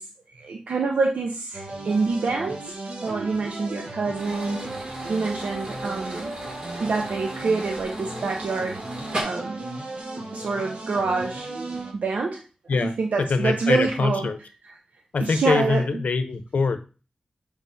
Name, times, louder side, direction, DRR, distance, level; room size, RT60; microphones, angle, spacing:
voice 1, 0.0-2.7 3.0-6.3 6.8-8.8 9.2-9.6 10.3-11.5 12.0-12.4 12.8-14.3 15.2-15.8, right 4 dB, 75° right, 1 dB, 0.8 m, -26 dB
sound 1, 1.5-11.9, right 2 dB, 55° right, 1.4 m, -35 dB
sound 2, 4.1-9.2, right 1 dB, 35° right, 2.2 m, -37 dB
voice 2, 12.7-14.4 15.1-16.8, left 4 dB, 75° left, 9 dB, 0.7 m, -24 dB
7.5 x 4.8 x 2.7 m, 0.34 s
wide cardioid pair, 125°, 3 cm